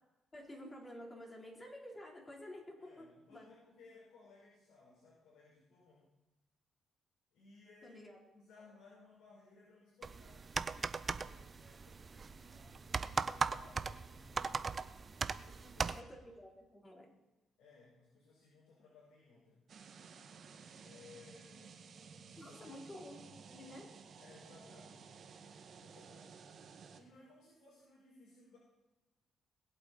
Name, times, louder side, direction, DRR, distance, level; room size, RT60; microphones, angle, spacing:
voice 1, 0.3-3.5 7.8-8.2 15.9-17.2 22.4-23.9, left 1 dB, 25° left, -1 dB, 3.8 m, -51 dB
voice 2, 2.8-6.0 7.3-8.1 8.3-10.5 10.9-14.7 15.0-16.1 17.6-19.6 20.8-21.8 22.3-22.7 24.2-25.2 25.8-26.4 26.7-28.6, left 3 dB, 75° left, -6 dB, 5.8 m, -62 dB
sound 1, 10.0-16.0, right 5 dB, 35° right, 0.6 m, -39 dB
sound 2, 19.7-27.0, right 6 dB, 55° right, 1.8 m, -55 dB
21.0 x 8.1 x 4.3 m, 1.1 s
cardioid pair, 90°, 0 cm